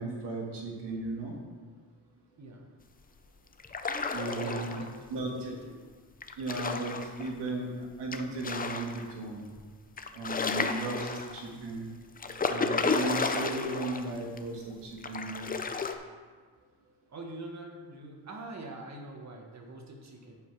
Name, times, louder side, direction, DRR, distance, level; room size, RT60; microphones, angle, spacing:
voice 1, 0.0-1.3 4.1-4.8 5.1-5.5 6.4-7.7 8.0-9.5 10.1-11.1 11.3-11.9 12.5-15.6, right 2 dB, 90° right, -1 dB, 2.0 m, -36 dB
voice 2, 2.4-2.7 4.4-5.9 17.1-20.4, right 2 dB, 40° right, 2 dB, 1.5 m, -44 dB
sound 1, 3.6-5.0 6.2-7.3 8.1-9.1 9.6-9.7 10.0-11.5 12.2-14.1 14.4-14.5 15.0-15.9, left 4 dB, 20° left, 0.5 m, -32 dB
10.5 x 5.5 x 4.8 m, 1.5 s
cardioid pair, 135°, 40 cm